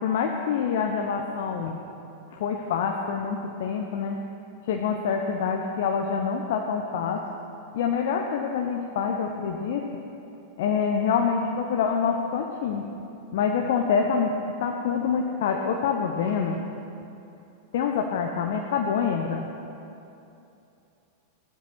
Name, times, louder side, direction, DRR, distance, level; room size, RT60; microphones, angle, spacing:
voice 1, 0.0-1.8 2.3-4.2 4.7-7.2 7.7-9.8 10.6-12.9 13.3-16.6 17.7-19.5, left 6 dB, 55° left, 2 dB, 1.1 m, -26 dB
17.0 x 12.5 x 6.1 m, 2.7 s
figure-of-eight pair, 90°, 0 cm